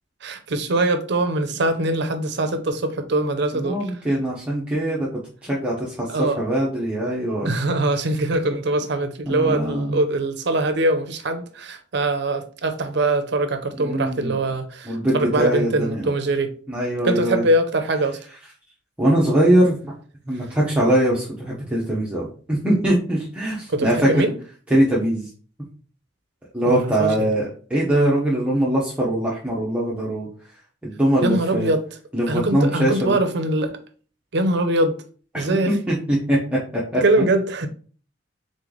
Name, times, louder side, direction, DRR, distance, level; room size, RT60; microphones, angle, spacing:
voice 1, 0.2-3.8 6.1-6.4 7.4-16.5 17.0-18.2 23.7-24.3 26.7-27.3 31.2-31.8 32.3-33.8 34.3-35.0 35.3-35.8 37.0-37.7, right 2 dB, 60° right, 0.6 m, -22 dB
voice 2, 3.5-5.1 5.4-7.5 9.3-10.0 13.8-14.4 14.8-16.0 16.7-17.4 19.0-19.9 20.3-24.1 24.7-25.3 26.5-30.3 30.8-31.7 32.1-33.2 35.3-36.6 36.9-37.0, right 1 dB, 5° right, 0.8 m, -22 dB
3.9 x 3.2 x 3.8 m
head